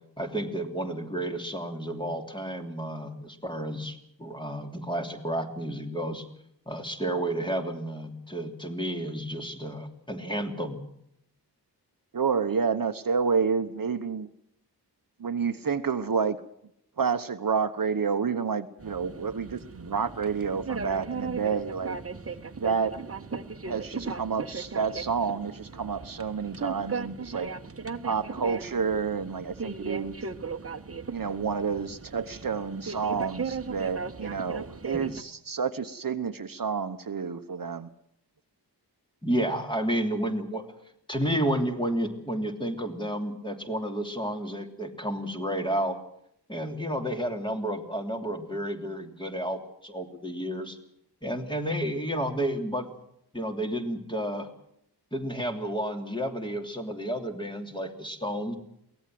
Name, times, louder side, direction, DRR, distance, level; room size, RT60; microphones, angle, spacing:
voice 1, 0.2-6.2 6.7-10.8 39.2-40.7 41.1-46.0 46.5-50.8 51.2-52.9 53.3-54.5 55.1-58.6, right 1 dB, 10° left, 4 dB, 3.1 m, -31 dB
voice 2, 12.1-14.3 15.2-16.4 17.0-22.0 22.6-23.0 23.6-27.5 28.0-30.1 31.1-37.9, right 6 dB, 55° right, 10 dB, 1.1 m, -29 dB
sound 1, 18.8-35.2, right 4 dB, 35° right, 1.3 m, -37 dB
23.0 x 18.0 x 7.7 m, 0.74 s
wide cardioid pair, 120°, 41 cm